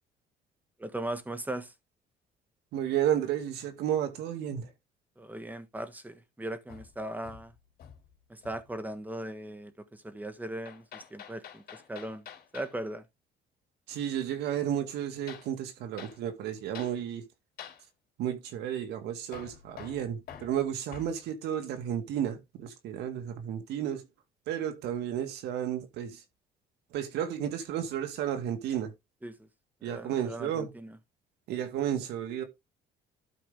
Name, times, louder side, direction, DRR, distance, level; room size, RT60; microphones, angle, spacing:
voice 1, 0.8-1.7 5.2-7.5 8.4-12.2 12.5-13.0 29.2-29.3 29.8-30.9, right 1 dB, 10° right, 1.4 m, -38 dB
voice 2, 2.7-4.7 13.9-17.2 18.2-24.0 24.5-26.2 26.9-28.9 29.8-30.7 31.5-32.4, right 10 dB, 85° right, 2.0 m, -32 dB
Hammer, 6.7-8.1 8.4-8.8 10.7-12.8 15.3-15.5 16.0-16.2 16.8-17.0 17.6-17.8 19.3-21.2, left 9 dB, 65° left, 2.9 m, -48 dB
12.0 x 4.9 x 3.7 m
cardioid pair, 110°, 17 cm